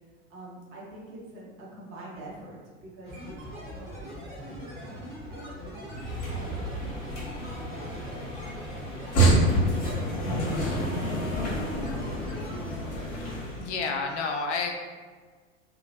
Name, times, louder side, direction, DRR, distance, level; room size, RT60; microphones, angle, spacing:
voice 1, 0.3-5.8 6.3-8.3 9.7-10.2 10.6-11.5, right 1 dB, 30° right, -4 dB, 0.8 m, -45 dB
sound 1, 3.0-12.6, equal, 10° right, 1.3 m, -41 dB
sound 2, 5.9-13.7, right 1 dB, 35° left, 1.1 m, -28 dB
voice 2, 13.6-14.7, left 4 dB, 65° left, 2 dB, 0.5 m, -29 dB
2.8 x 2.2 x 2.8 m, 1.5 s
figure-of-eight pair, 85°, 39 cm